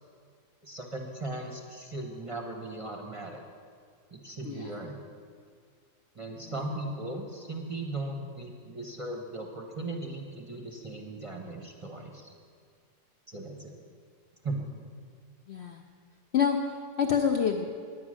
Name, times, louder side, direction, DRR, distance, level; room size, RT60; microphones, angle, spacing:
voice 1, 0.6-3.4 4.1-4.9 6.2-12.3 13.3-13.7 14.4-14.7, right 2 dB, 25° right, 1 dB, 0.8 m, -37 dB
voice 2, 4.4-4.9 6.3-6.6 15.5-15.8 16.3-17.7, left 7 dB, 70° left, 3 dB, 0.6 m, -28 dB
9.6 x 9.5 x 6.3 m, 2.2 s
omnidirectional pair, 1.8 m